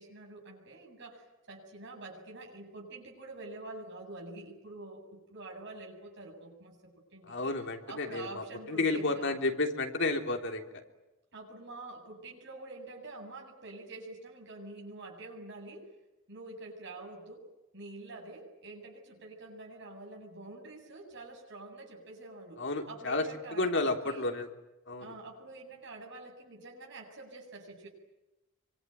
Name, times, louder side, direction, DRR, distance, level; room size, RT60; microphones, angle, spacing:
voice 1, 0.0-7.5 7.9-9.5 11.3-15.9 16.3-17.5 17.7-24.3 25.0-27.9, right 2 dB, 60° right, 0 dB, 7.9 m, -46 dB
voice 2, 7.3-10.7 22.6-23.2 23.5-24.5 24.9-25.1, left 3 dB, 60° left, 4 dB, 3.4 m, -31 dB
25.0 x 25.0 x 9.3 m, 1.0 s
head